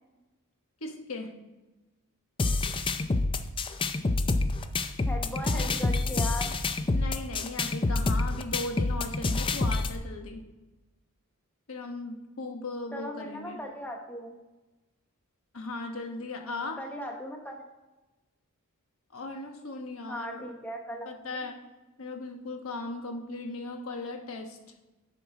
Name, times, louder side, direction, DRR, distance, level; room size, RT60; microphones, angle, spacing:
voice 1, 0.8-1.3 6.9-10.4 11.7-13.6 15.5-16.8 19.1-20.6 21.0-21.6 22.0-24.6, left 2 dB, 65° left, 3 dB, 1.2 m, -37 dB
sound 1, 2.4-10.0, left 3 dB, 25° left, 0.4 m, -28 dB
voice 2, 5.1-6.5 12.9-14.4 16.5-17.6 20.1-21.3, equal, 5° left, 2 dB, 0.9 m, -38 dB
7.7 x 6.0 x 4.9 m, 1.1 s
head